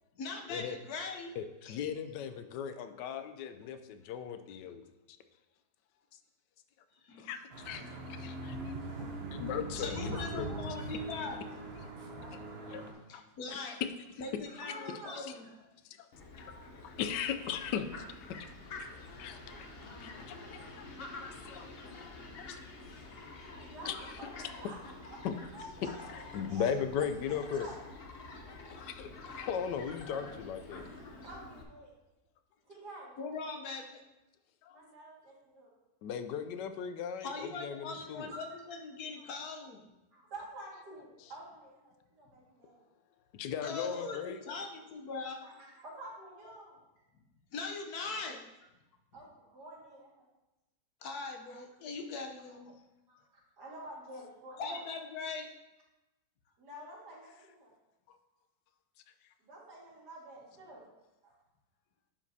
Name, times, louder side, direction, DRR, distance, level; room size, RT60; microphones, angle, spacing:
voice 1, 0.1-1.3 1.7-1.8 7.0-7.3 9.8-11.5 13.1-13.8 14.2-15.4 33.2-34.0 37.2-39.9 43.6-45.4 47.5-48.4 51.0-52.8 54.6-55.5, left 4 dB, 65° left, 3 dB, 1.2 m, -41 dB
voice 2, 1.4-4.8 7.2-7.8 8.1-8.7 9.4-10.5 10.8-10.9 12.3-12.4 12.7-13.2 13.6-13.9 15.1-15.3 15.8-16.1 16.4-16.5 16.8-18.5 18.8-18.9 19.2-19.7 20.0-20.4 20.8-20.9 21.2-21.7 22.4-22.6 23.8-24.2 25.2-25.4 26.1-27.7 28.7-30.9 34.6-34.8 36.0-38.3 43.3-44.4 58.1-58.2, left 7 dB, 90° left, 10 dB, 1.2 m, -38 dB
sound 1, 7.5-12.9, right 1 dB, 45° right, 0.9 m, -41 dB
voice 3, 9.9-10.7 12.1-12.4 14.5-15.5 19.5-20.8 21.6-22.5 22.8-23.1 23.6-24.8 25.1-25.2 25.5-26.1 26.4-26.7 27.3-27.8 30.7-31.9 32.7-33.1 34.7-35.7 38.3-38.4 40.1-42.9 45.4-45.5 45.8-46.8 49.1-50.3 53.1-53.2 53.6-54.8 56.6-57.7 59.4-60.8 61.2-61.3, right 1 dB, 75° right, -5 dB, 2.5 m, -49 dB
Fowl, 16.1-31.6, left 3 dB, 50° left, 0.7 m, -48 dB
10.5 x 5.1 x 2.7 m, 1.0 s
omnidirectional pair, 1.8 m